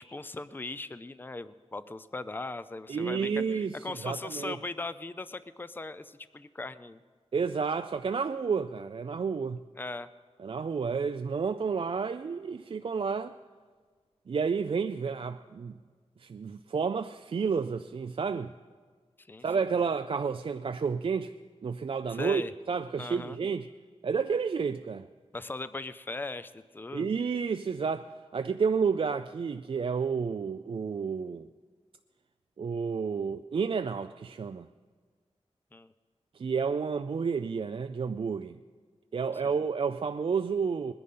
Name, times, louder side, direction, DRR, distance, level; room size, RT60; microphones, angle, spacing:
voice 1, 0.0-7.0 9.8-10.1 19.2-19.5 22.1-22.5 23.0-23.4 25.3-27.1 35.7-35.9 39.4-39.5, left 2 dB, 20° left, 0.5 m, -39 dB
voice 2, 2.9-3.7 4.0-4.6 7.3-9.6 10.4-13.4 14.3-15.8 16.2-18.5 19.4-21.3 21.6-22.4 22.7-23.7 24.0-25.0 26.9-31.5 32.6-34.7 36.4-38.6 39.1-40.9, right 5 dB, 50° right, 0.4 m, -30 dB
20.5 x 10.5 x 5.5 m
wide cardioid pair, 100°, 11 cm